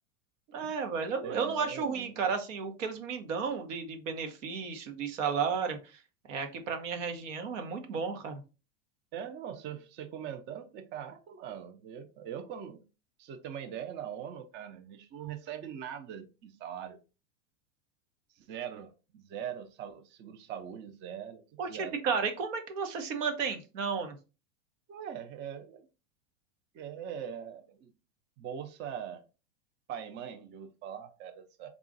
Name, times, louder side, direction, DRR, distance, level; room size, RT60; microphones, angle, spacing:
voice 1, 0.5-6.0 6.3-8.4 21.6-24.2, right 5 dB, 75° right, 1.1 m, -33 dB
voice 2, 1.2-2.2 9.1-12.8 13.2-17.0 18.4-22.0 24.9-25.8 26.7-27.9 28.4-29.2 29.9-31.7, right 9 dB, 30° right, 0.5 m, -41 dB
3.8 x 2.4 x 3.8 m
supercardioid pair, 120°, 37 cm